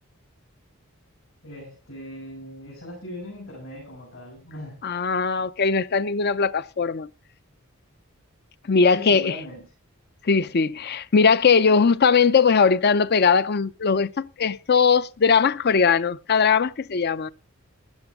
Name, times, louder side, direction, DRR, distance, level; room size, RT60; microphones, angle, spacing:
voice 1, 1.4-4.8 8.9-9.7, left 1 dB, 75° left, 7.3 m, -39 dB
voice 2, 4.8-7.1 8.7-9.3 10.3-17.3, left 5 dB, 50° left, 0.6 m, -20 dB
16.0 x 11.5 x 3.6 m
head